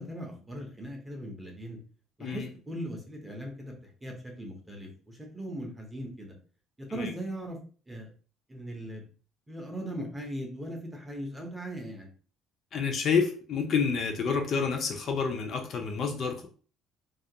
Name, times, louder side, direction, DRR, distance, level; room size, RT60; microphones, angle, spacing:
voice 1, 0.0-1.8 2.2-6.4 6.8-7.6 7.9-8.1 8.5-9.0 9.5-12.1, equal, 10° right, 0 dB, 0.5 m, -39 dB
voice 2, 12.7-16.5, left 5 dB, 40° left, 3 dB, 0.4 m, -29 dB
2.3 x 2.1 x 2.7 m, 0.39 s
cardioid pair, 165°, 0 cm